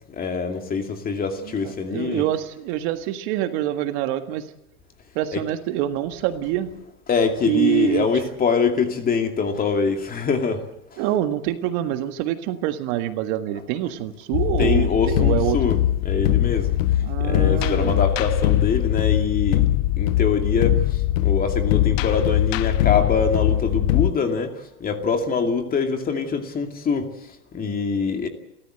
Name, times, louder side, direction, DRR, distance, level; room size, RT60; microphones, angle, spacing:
voice 1, 0.1-2.2 5.3-5.4 7.1-11.0 14.6-15.8 16.0-19.7 20.0-28.3, left 5 dB, 20° left, 6 dB, 2.4 m, -24 dB
voice 2, 1.4-4.5 5.1-6.7 7.5-8.1 11.0-15.6 17.0-18.0, right 13 dB, 45° right, 9 dB, 1.8 m, -25 dB
sound 1, 14.3-24.1, left 13 dB, 55° left, 1.0 m, -21 dB
29.5 x 13.5 x 7.9 m, 0.84 s
supercardioid pair, 145°, 46 cm